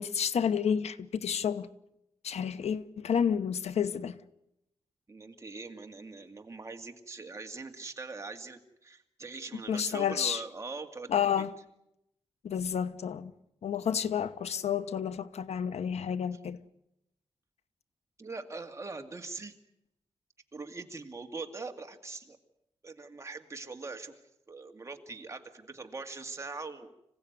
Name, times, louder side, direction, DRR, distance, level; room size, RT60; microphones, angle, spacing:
voice 1, 0.0-1.7 2.2-4.2 9.7-10.4 11.1-11.5 12.4-13.3 13.6-16.6, left 8 dB, 80° left, 1.0 m, -30 dB
voice 2, 5.1-11.5 16.3-16.4 18.2-19.5 20.5-22.4 22.8-24.2 24.5-26.9, right 3 dB, 25° right, 2.2 m, -42 dB
26.0 x 16.0 x 9.4 m
wide cardioid pair, 105°, 11 cm